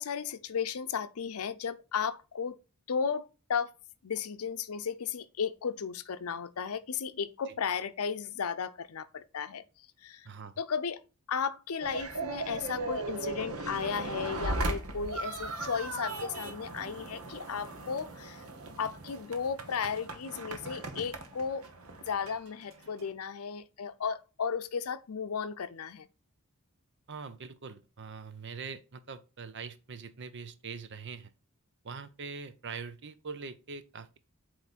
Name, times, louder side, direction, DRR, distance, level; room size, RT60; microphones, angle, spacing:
voice 1, 0.0-2.6 2.9-3.2 3.5-3.7 4.0-9.6 10.0-10.3 10.6-11.0 11.3-18.4 18.8-21.6 22.1-26.1, left 6 dB, 85° left, 0.6 m, -34 dB
voice 2, 10.2-10.6 27.1-31.3 31.8-34.2, right 5 dB, 55° right, 0.7 m, -43 dB
sound 1, 11.8-23.1, right 2 dB, 85° right, 1.1 m, -38 dB
8.2 x 3.2 x 4.1 m
head